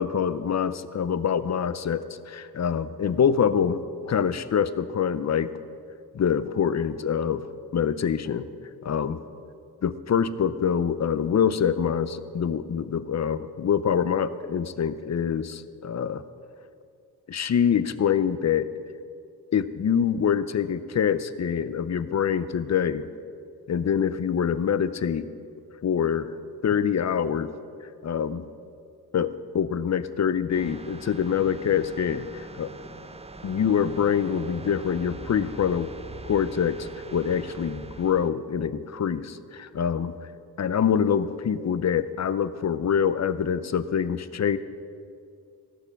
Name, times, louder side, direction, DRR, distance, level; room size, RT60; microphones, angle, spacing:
voice 1, 0.0-5.5 6.1-8.5 8.8-9.2 9.8-16.2 17.3-18.7 19.5-23.1 23.7-25.3 25.8-26.3 26.6-27.5 28.0-28.4 29.1-32.7 33.4-35.9 36.2-40.1 40.6-44.6, left 7 dB, 45° left, 14 dB, 0.5 m, -25 dB
sound 1, 30.5-38.3, right 3 dB, 15° right, 0.5 m, -42 dB
16.5 x 6.8 x 7.1 m, 2.4 s
wide cardioid pair, 135°, 39 cm